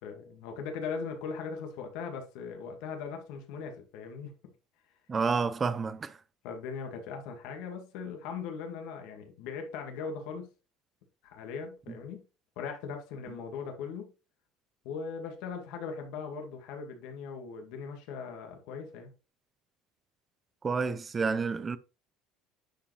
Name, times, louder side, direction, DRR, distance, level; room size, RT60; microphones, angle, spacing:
voice 1, 0.0-4.3 6.4-10.5 11.2-12.2 12.6-14.1 14.8-19.1, left 5 dB, 70° left, 2.1 m, -39 dB
voice 2, 5.1-6.1 20.6-21.8, right 5 dB, 20° right, 0.6 m, -29 dB
10.0 x 5.0 x 3.3 m
cardioid pair, 165°, 0 cm